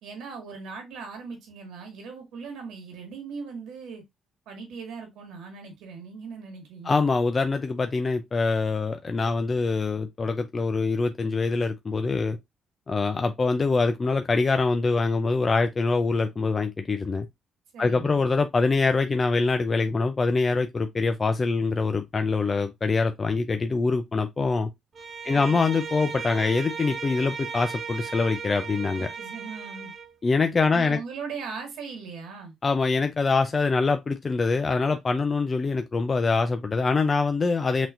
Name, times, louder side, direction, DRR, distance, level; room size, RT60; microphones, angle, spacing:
voice 1, 0.0-4.0 4.5-7.0 17.7-18.2 25.2-25.6 29.0-29.9 30.7-32.5, right 5 dB, 85° right, 2.0 m, -39 dB
voice 2, 6.8-12.4 12.9-17.3 17.8-24.7 25.2-29.1 30.2-31.0 32.6-37.9, left 4 dB, 35° left, 0.5 m, -24 dB
Bowed string instrument, 24.9-30.1, right 6 dB, 50° right, 0.8 m, -36 dB
5.9 x 2.9 x 2.6 m
cardioid pair, 90°, 0 cm